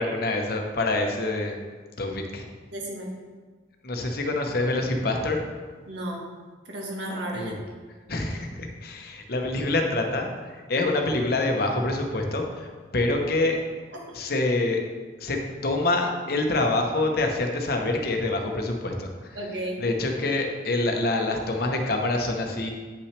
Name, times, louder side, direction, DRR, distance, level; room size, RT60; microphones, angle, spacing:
voice 1, 0.0-1.5 2.0-2.4 3.8-5.4 7.3-7.5 8.1-10.3 10.7-12.7 12.9-13.6 14.1-14.8 15.2-15.4 15.6-19.1 19.8-22.7, left 2 dB, 55° left, 3 dB, 0.9 m, -26 dB
voice 2, 2.7-3.1 5.9-6.2 6.7-7.6 15.3-15.4 19.3-19.8, right 1 dB, 75° right, -2 dB, 1.6 m, -33 dB
8.9 x 5.8 x 3.3 m, 1.5 s
head